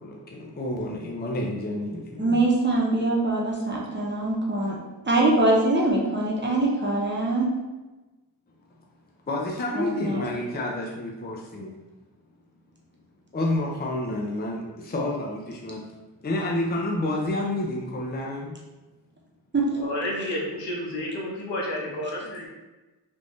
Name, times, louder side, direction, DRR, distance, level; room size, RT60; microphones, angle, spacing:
voice 1, 0.0-2.4 9.3-11.7 13.3-15.8 16.2-18.5, left 1 dB, 25° left, -1 dB, 0.5 m, -29 dB
voice 2, 2.2-4.8 5.0-7.5 9.7-10.4 19.5-19.8, right 2 dB, 25° right, -4 dB, 0.9 m, -23 dB
voice 3, 19.8-22.5, left 1 dB, 80° left, -2 dB, 0.9 m, -30 dB
3.4 x 2.6 x 3.1 m, 1.1 s
cardioid pair, 70°, 42 cm